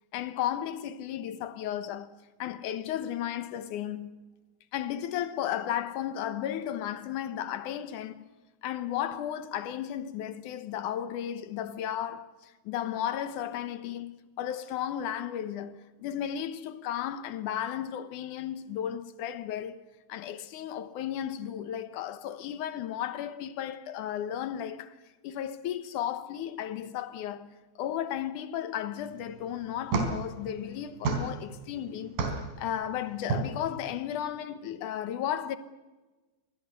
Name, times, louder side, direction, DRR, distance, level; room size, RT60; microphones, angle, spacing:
voice 1, 0.1-4.2 4.7-8.2 8.6-19.8 20.1-25.0 25.2-32.2 32.6-35.6, left 10 dB, 65° left, 2.2 m, -34 dB
sound 1, 29.0-34.0, right 3 dB, 65° right, 5.4 m, -34 dB
27.0 x 21.5 x 6.9 m
omnidirectional pair, 4.5 m